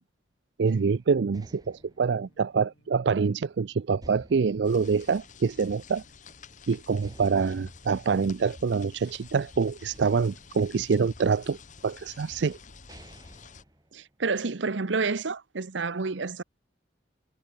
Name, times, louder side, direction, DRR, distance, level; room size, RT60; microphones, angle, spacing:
voice 1, 0.6-6.0 6.7-11.6 11.8-12.6, right 5 dB, 65° right, 0.4 m, -26 dB
sound 1, 0.7-3.5 4.0-5.9 6.3-6.4 7.0-9.4 9.9-11.5 12.2-12.3 12.7-14.5, right 1 dB, 20° right, 5.1 m, -53 dB
sound 2, 1.3-9.5, left 1 dB, 80° left, 7.8 m, -68 dB
sound 3, 4.6-13.6, left 4 dB, 45° left, 1.2 m, -50 dB
voice 2, 13.9-16.4, right 4 dB, 80° right, 0.9 m, -29 dB
head